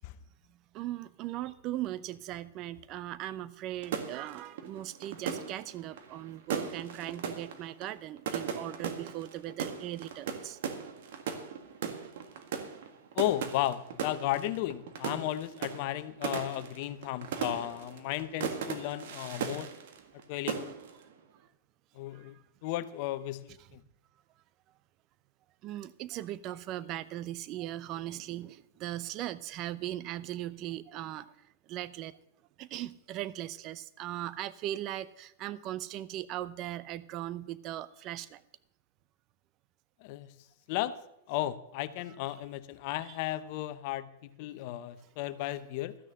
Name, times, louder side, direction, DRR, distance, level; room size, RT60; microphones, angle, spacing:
voice 1, 0.5-10.6 22.1-22.4 23.6-23.7 25.6-32.1 32.6-38.4 43.0-43.2, right 13 dB, 40° right, 17 dB, 0.7 m, -39 dB
sound 1, 3.8-20.2 20.5-21.0, right 7 dB, 70° right, 1.7 m, -38 dB
voice 2, 13.1-19.7 20.3-20.7 22.0-22.3 22.6-23.8 40.0-40.3 40.7-41.0 41.3-44.1 44.4-46.0, left 14 dB, 55° left, 13 dB, 0.8 m, -34 dB
13.5 x 6.4 x 7.6 m, 0.80 s
hypercardioid pair, 115°, 0 cm